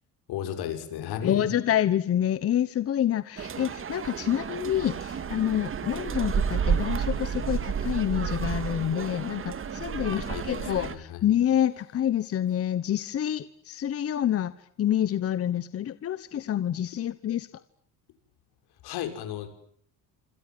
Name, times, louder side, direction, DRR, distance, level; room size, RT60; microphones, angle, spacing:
voice 1, 0.3-1.5 10.1-11.3 18.8-19.5, left 10 dB, 80° left, 8 dB, 6.4 m, -34 dB
voice 2, 1.2-17.5, left 10 dB, 40° left, 14 dB, 1.1 m, -27 dB
sound 1, 3.4-11.0, right 7 dB, 35° right, 2.1 m, -31 dB
27.0 x 26.5 x 7.8 m, 0.64 s
cardioid pair, 160°, 38 cm